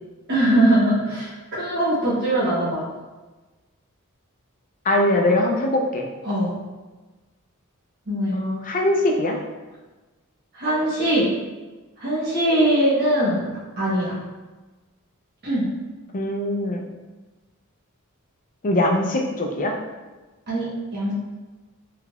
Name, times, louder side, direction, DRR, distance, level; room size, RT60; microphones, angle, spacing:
voice 1, 0.3-2.9 6.2-6.5 8.1-8.3 10.5-11.3 12.0-13.5 13.8-14.2 15.4-15.7 20.5-21.1, right 1 dB, 50° right, -9 dB, 1.2 m, -21 dB
voice 2, 4.9-6.1 8.3-9.4 16.1-16.9 18.6-19.7, left 1 dB, 40° left, 1 dB, 0.5 m, -22 dB
3.4 x 3.3 x 2.4 m, 1.2 s
head